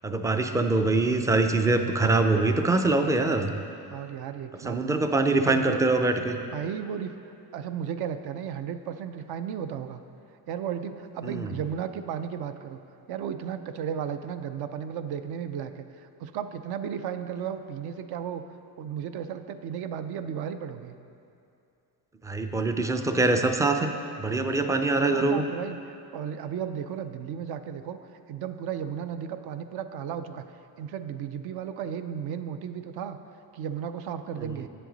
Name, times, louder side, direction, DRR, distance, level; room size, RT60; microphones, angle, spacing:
voice 1, 0.0-3.5 4.6-6.4 11.2-11.5 22.2-23.9 24.2-25.4 34.4-34.5, right 2 dB, 10° right, 6 dB, 0.3 m, -24 dB
voice 2, 3.9-5.0 5.3-5.8 6.5-10.0 10.5-12.8 13.1-18.4 18.8-21.0 25.0-28.0 28.3-30.4 30.8-33.2 33.5-34.7, right 8 dB, 60° right, 10 dB, 0.6 m, -34 dB
9.3 x 7.7 x 3.9 m, 2.6 s
cardioid pair, 110°, 42 cm